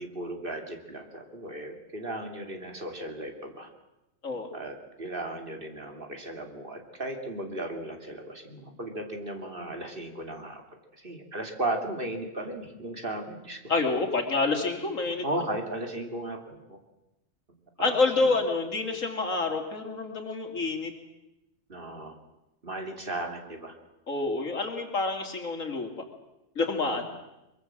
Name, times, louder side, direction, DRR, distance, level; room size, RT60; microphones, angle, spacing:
voice 1, 0.0-3.7 4.5-10.6 11.0-13.6 15.2-16.8 17.9-18.0 21.7-22.2 22.6-23.7 26.9-27.0, right 1 dB, 40° right, 4 dB, 2.9 m, -36 dB
voice 2, 13.7-15.2 17.8-20.9 24.1-25.9 26.5-27.0, left 3 dB, 85° left, 4 dB, 3.3 m, -27 dB
23.0 x 23.0 x 7.6 m, 0.94 s
omnidirectional pair, 1.3 m